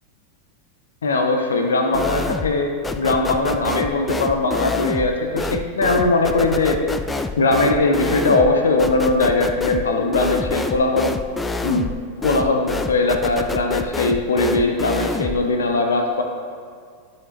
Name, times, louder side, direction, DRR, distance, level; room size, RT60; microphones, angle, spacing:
voice 1, 1.0-2.7 3.0-6.8 7.4-11.1 11.6-11.9 12.2-16.2, left 2 dB, 70° left, 3 dB, 0.7 m, -20 dB
sound 1, 1.9-2.6 2.8-15.5, left 3 dB, 10° left, 0.3 m, -27 dB
10.5 x 5.7 x 3.2 m, 2.1 s
figure-of-eight pair, 90°, 0 cm